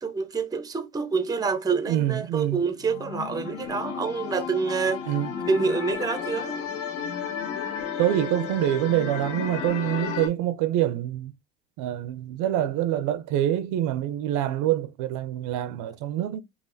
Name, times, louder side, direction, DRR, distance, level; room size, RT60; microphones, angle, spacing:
voice 1, 0.0-5.0 5.5-6.6, right 5 dB, 10° right, 0.6 m, -27 dB
voice 2, 1.9-2.6 5.1-5.3 8.0-11.3 11.8-16.4, right 12 dB, 55° right, 0.6 m, -26 dB
sound 1, 2.8-10.3, left 7 dB, 80° left, 1.5 m, -33 dB
5.6 x 2.5 x 2.6 m
hypercardioid pair, 90°, 36 cm